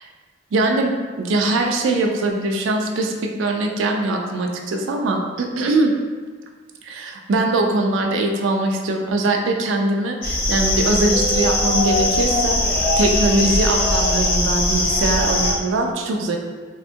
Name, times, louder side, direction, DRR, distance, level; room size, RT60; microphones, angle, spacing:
voice 1, 0.5-5.9 6.8-12.6 13.0-16.4, right 2 dB, 70° right, 2 dB, 0.3 m, -21 dB
sound 1, 10.2-15.5, left 1 dB, 45° left, 0.6 m, -20 dB
3.4 x 2.2 x 2.7 m, 1.5 s
head